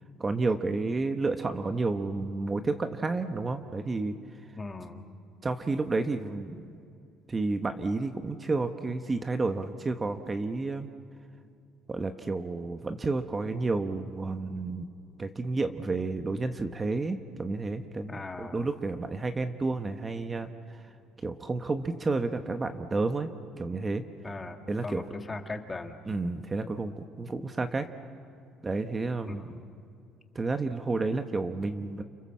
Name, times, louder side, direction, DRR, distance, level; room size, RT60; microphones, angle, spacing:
voice 1, 0.2-4.1 5.4-6.8 7.3-10.9 11.9-14.9 15.2-20.8 21.2-23.3 23.6-24.0 24.7-25.0 26.0-27.9 28.6-29.5 30.3-32.0, right 3 dB, 20° right, 8 dB, 1.1 m, -31 dB
voice 2, 4.6-5.0 18.1-18.6 24.2-25.9 27.3-27.5 29.3-29.6, left 3 dB, 20° left, 6 dB, 2.0 m, -39 dB
29.5 x 26.5 x 7.5 m, 2.4 s
cardioid pair, 120°, 0 cm